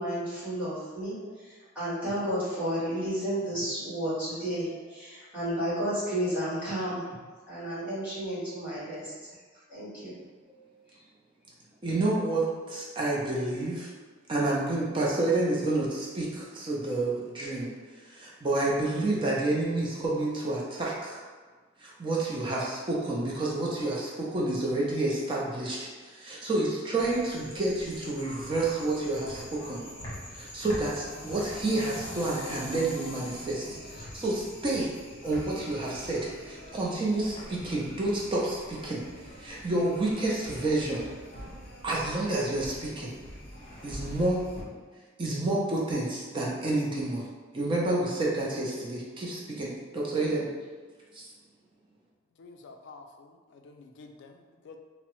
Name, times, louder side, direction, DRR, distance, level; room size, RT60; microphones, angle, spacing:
voice 1, 0.0-9.1 9.7-10.2, equal, 10° right, -12 dB, 1.5 m, -32 dB
voice 2, 11.8-13.9 14.3-17.7 18.0-21.2 21.8-29.8 30.3-34.9 35.2-39.0 39.3-41.0 41.8-43.1 43.8-44.4 45.2-47.3 47.5-50.5 51.1-51.3, right 2 dB, 25° right, -4 dB, 0.4 m, -29 dB
sound 1, 27.0-44.6, left 1 dB, 25° left, 0.9 m, -44 dB
voice 3, 52.4-54.8, left 3 dB, 65° left, 4 dB, 0.3 m, -50 dB
3.4 x 2.0 x 2.9 m, 1.4 s
head